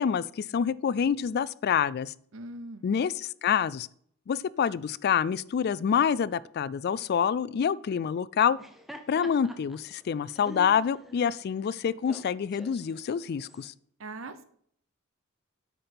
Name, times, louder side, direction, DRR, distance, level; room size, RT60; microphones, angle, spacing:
voice 1, 0.0-2.1 2.8-3.9 4.3-8.6 9.1-13.7, left 7 dB, 50° left, 20 dB, 0.3 m, -27 dB
voice 2, 2.3-2.9 14.0-14.4, right 2 dB, 70° right, 12 dB, 0.9 m, -40 dB
Laughter, 8.4-13.7, right 1 dB, ahead, 0.8 m, -47 dB
8.5 x 5.8 x 5.2 m, 0.65 s
head